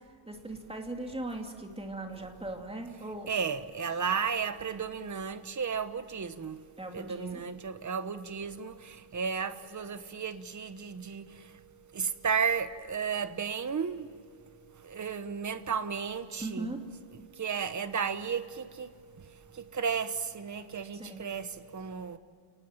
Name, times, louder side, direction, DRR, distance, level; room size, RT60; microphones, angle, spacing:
voice 1, 0.3-3.3 6.8-7.5 16.4-16.8 20.9-21.2, right 2 dB, 10° right, 2.6 m, -39 dB
voice 2, 3.3-6.6 6.9-8.7 9.1-11.2 11.9-14.1 14.9-16.7 17.4-18.9 19.7-21.5 21.7-22.2, right 6 dB, 35° right, 1.2 m, -33 dB
29.0 x 19.5 x 8.9 m
wide cardioid pair, 170°, 48 cm